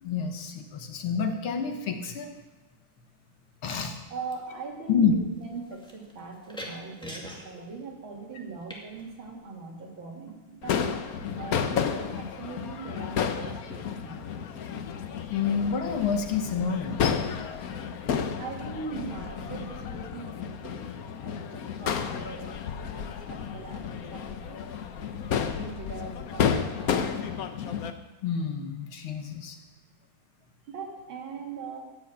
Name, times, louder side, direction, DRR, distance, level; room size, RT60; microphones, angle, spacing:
voice 1, 0.0-2.3 3.6-4.0 4.9-5.1 15.3-17.7 28.2-29.6, left 6 dB, 80° left, 5 dB, 2.2 m, -28 dB
sound 1, 1.4-1.8 2.7-3.2 3.5-9.7, equal, ahead, 1.7 m, -46 dB
voice 2, 4.1-10.8 11.4-14.4 18.4-20.9 21.2-27.1 30.7-31.8, right 4 dB, 70° right, 0 dB, 2.9 m, -41 dB
Crowd / Fireworks, 10.6-27.9, left 7 dB, 60° left, 1.0 m, -32 dB
14.0 x 6.5 x 8.9 m, 1.2 s
omnidirectional pair, 2.3 m